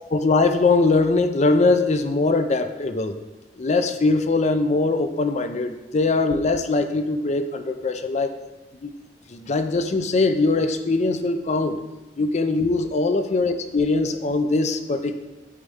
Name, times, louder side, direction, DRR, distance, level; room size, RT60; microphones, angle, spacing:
voice 1, 0.0-3.2 3.6-8.3 8.8-8.9 9.3-11.8 12.2-15.2, left 3 dB, 40° left, 9 dB, 0.4 m, -21 dB
8.4 x 4.1 x 3.5 m, 1.2 s
head